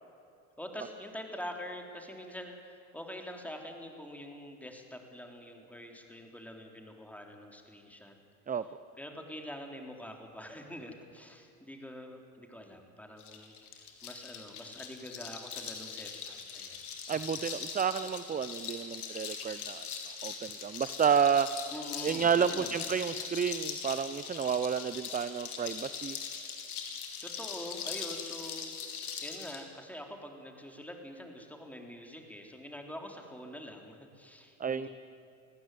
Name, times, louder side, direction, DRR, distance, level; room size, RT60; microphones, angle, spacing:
voice 1, 0.6-8.1 9.0-13.5 14.0-16.8 21.7-22.9 27.2-28.7 29.2-34.9, left 1 dB, 5° left, 3 dB, 3.8 m, -45 dB
sound 1, 13.2-29.6, left 6 dB, 85° left, 2.7 m, -41 dB
voice 2, 17.1-19.9 20.2-21.5 22.0-26.2 34.6-34.9, right 7 dB, 20° right, 14 dB, 0.7 m, -30 dB
25.0 x 15.5 x 9.5 m, 2.6 s
hypercardioid pair, 70°, 43 cm